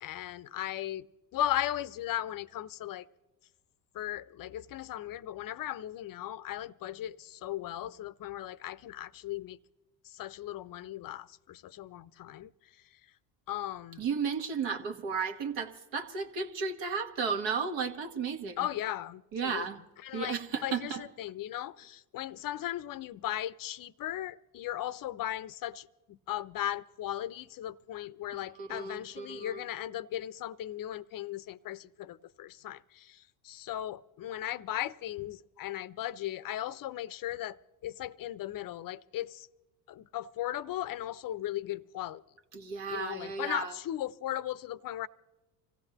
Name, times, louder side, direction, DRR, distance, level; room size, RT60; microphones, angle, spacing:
voice 1, 0.0-3.1 3.9-9.6 10.0-12.7 13.5-14.0 18.6-19.7 20.0-37.6 37.8-39.5 39.9-42.2 42.9-45.1, left 12 dB, 45° left, 0.6 m, -37 dB
voice 2, 14.0-18.7 19.3-19.8 20.1-21.0 28.6-29.6 42.5-43.7, right 5 dB, 65° right, 1.4 m, -34 dB
25.5 x 16.0 x 2.9 m
hypercardioid pair, 60°, 49 cm